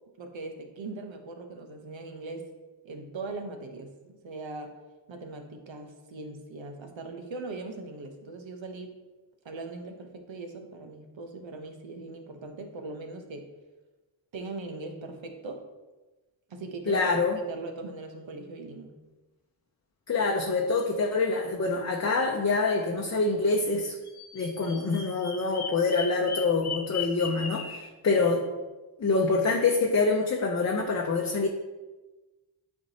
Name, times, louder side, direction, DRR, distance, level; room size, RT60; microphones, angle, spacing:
voice 1, 0.2-2.5 2.8-4.8 5.1-9.0 9.4-13.5 14.3-15.6 16.5-19.0, right 3 dB, 70° right, 4 dB, 1.0 m, -40 dB
voice 2, 16.9-17.4 20.1-24.0 24.3-28.5 29.0-31.5, left 3 dB, 35° left, 1 dB, 0.7 m, -26 dB
Bird vocalization bird call bird song, 24.0-27.9, left 6 dB, 55° left, 1.1 m, -38 dB
8.3 x 4.5 x 2.9 m, 1.2 s
cardioid pair, 60°, 47 cm